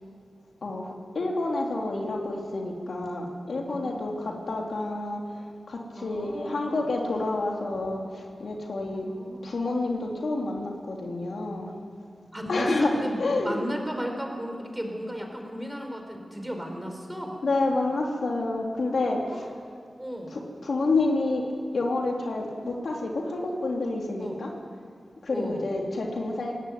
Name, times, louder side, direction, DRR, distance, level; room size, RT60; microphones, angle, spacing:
voice 1, 0.6-9.1 9.4-11.7 12.5-12.9 13.2-13.6 17.4-19.5 20.3-21.5 21.7-24.5 25.2-26.5, left 2 dB, 75° left, 0 dB, 3.0 m, -29 dB
voice 2, 3.7-4.4 6.0-6.8 8.9-9.5 12.3-17.3 19.3-19.5 20.0-20.3 24.2-24.4 25.3-25.7, equal, 10° right, 3 dB, 4.2 m, -35 dB
20.5 x 17.0 x 9.4 m, 2.2 s
wide cardioid pair, 65°, 0 cm